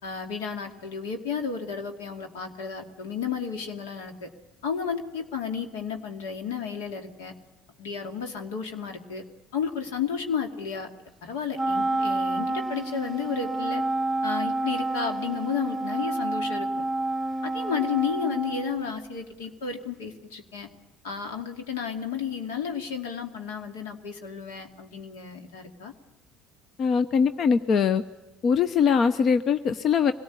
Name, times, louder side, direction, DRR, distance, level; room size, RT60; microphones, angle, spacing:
voice 1, 0.0-4.3 4.6-7.3 7.8-9.2 9.5-10.9 11.2-13.8 14.2-16.8 17.4-20.7 21.0-25.9, left 6 dB, 85° left, 5 dB, 2.4 m, -32 dB
Wind instrument woodwind instrument, 11.5-19.2, right 2 dB, 10° right, 0.9 m, -29 dB
voice 2, 26.8-28.0 28.4-30.1, left 6 dB, 50° left, 12 dB, 0.8 m, -22 dB
24.5 x 18.0 x 8.4 m, 1.1 s
hypercardioid pair, 70°, 0 cm